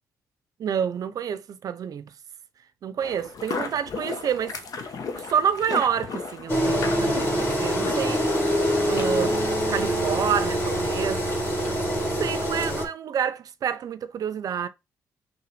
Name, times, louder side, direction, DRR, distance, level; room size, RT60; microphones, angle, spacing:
voice 1, 0.6-2.1 2.8-8.2 8.8-9.4 9.7-11.2 12.0-14.7, right 8 dB, 65° right, 0.5 m, -28 dB
sound 1, 3.0-9.6, left 4 dB, 65° left, 0.7 m, -35 dB
Engine, 6.5-12.9, equal, 35° left, 2.1 m, -25 dB
5.7 x 2.2 x 3.1 m
supercardioid pair, 60°, 7 cm